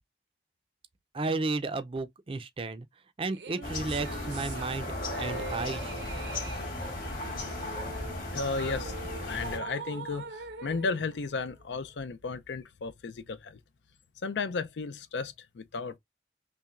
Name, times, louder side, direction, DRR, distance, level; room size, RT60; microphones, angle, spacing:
voice 1, 1.1-2.9 3.2-5.9, right 3 dB, 30° right, 0.4 m, -33 dB
sound 1, 3.3-11.9, right 4 dB, 80° right, 0.6 m, -43 dB
sound 2, 3.6-9.6, left 2 dB, 50° left, 1.9 m, -36 dB
voice 2, 8.3-13.6 14.2-16.0, left 4 dB, 85° left, 0.5 m, -34 dB
5.6 x 2.1 x 2.4 m
head